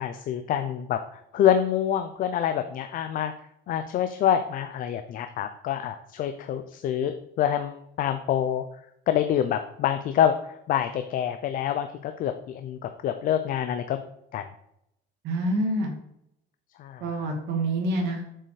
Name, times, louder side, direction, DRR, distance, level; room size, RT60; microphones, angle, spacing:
voice 1, 0.0-3.3 3.7-8.7 9.1-14.0 14.3-14.4 16.8-17.3, left 9 dB, 45° left, 8 dB, 0.6 m, -26 dB
voice 2, 15.2-15.9 17.0-18.2, right 1 dB, 65° right, 1 dB, 2.4 m, -27 dB
7.4 x 6.9 x 5.0 m, 0.78 s
cardioid pair, 160°, 19 cm